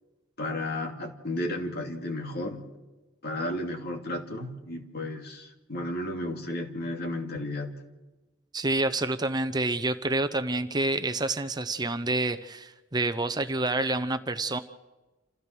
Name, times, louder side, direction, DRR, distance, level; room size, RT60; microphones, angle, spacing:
voice 1, 0.4-2.7 3.2-7.8, left 1 dB, 55° left, 3 dB, 2.8 m, -33 dB
voice 2, 8.5-14.6, right 2 dB, 20° right, 10 dB, 0.8 m, -28 dB
28.0 x 16.0 x 6.1 m, 1.1 s
head